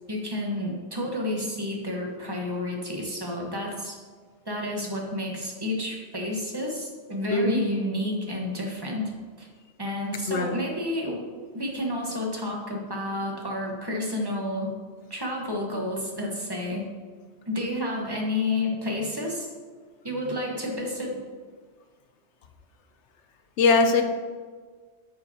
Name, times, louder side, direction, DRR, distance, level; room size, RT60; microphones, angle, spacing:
voice 1, 0.1-4.0 4.4-9.1 9.4-9.5 9.8-11.2 11.5-14.7 15.1-16.9 17.5-19.5 20.0-21.2, left 1 dB, 20° right, -1 dB, 1.3 m, -30 dB
voice 2, 7.3-7.6 10.3-10.5 23.6-24.0, left 3 dB, 90° left, 6 dB, 1.1 m, -21 dB
8.9 x 7.2 x 2.9 m, 1.5 s
omnidirectional pair, 1.1 m